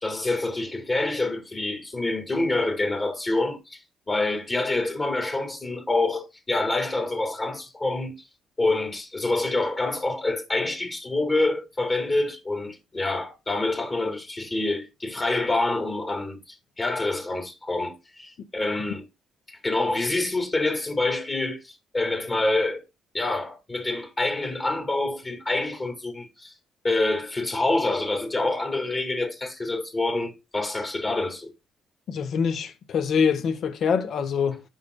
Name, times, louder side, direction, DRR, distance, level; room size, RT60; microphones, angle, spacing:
voice 1, 0.0-3.8 4.1-8.2 8.6-19.0 19.5-22.8 23.1-26.5 26.8-31.5, left 2 dB, 30° left, 2.1 m, -26 dB
voice 2, 32.1-34.6, left 6 dB, 65° left, 1.2 m, -24 dB
15.5 x 5.7 x 2.2 m
cardioid pair, 90°, 0 cm